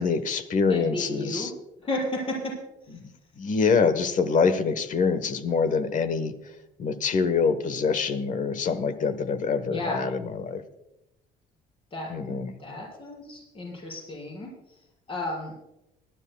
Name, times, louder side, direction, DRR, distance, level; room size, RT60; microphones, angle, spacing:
voice 1, 0.0-1.5 3.0-3.1 3.4-6.4 6.8-10.6 12.1-12.5, left 5 dB, 50° left, 12 dB, 1.2 m, -25 dB
voice 2, 0.7-1.5 1.8-2.6 2.9-3.0 9.7-10.1 11.9-14.8 15.1-15.5, left 1 dB, 30° left, -3 dB, 6.0 m, -33 dB
25.0 x 12.5 x 2.3 m, 0.89 s
cardioid pair, 110°, 17 cm